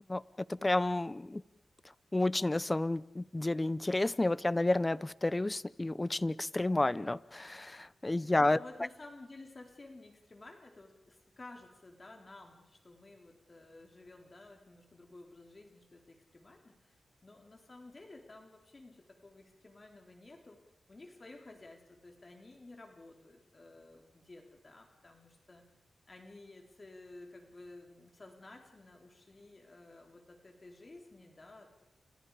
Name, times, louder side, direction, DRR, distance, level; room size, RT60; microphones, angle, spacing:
voice 1, 0.1-1.4 2.1-8.6, left 2 dB, 25° left, 0.8 m, -31 dB
voice 2, 8.4-20.6 20.9-25.6 26.1-31.8, left 2 dB, 40° left, 4.0 m, -53 dB
30.0 x 26.5 x 5.1 m
cardioid pair, 50°, 0 cm